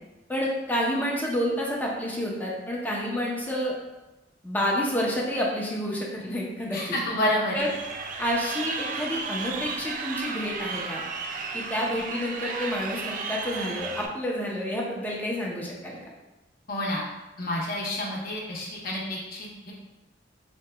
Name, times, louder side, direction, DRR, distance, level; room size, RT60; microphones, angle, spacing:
voice 1, 0.3-3.7 4.4-7.0 7.5-7.7 8.2-11.0 11.5-16.0, equal, 10° left, -3 dB, 0.6 m, -29 dB
voice 2, 6.7-7.7 16.7-17.0 17.4-19.7, left 1 dB, 50° left, -4 dB, 0.7 m, -29 dB
Crowd, 7.6-14.1, right 4 dB, 45° right, 0.3 m, -34 dB
4.4 x 2.8 x 2.2 m, 1.1 s
head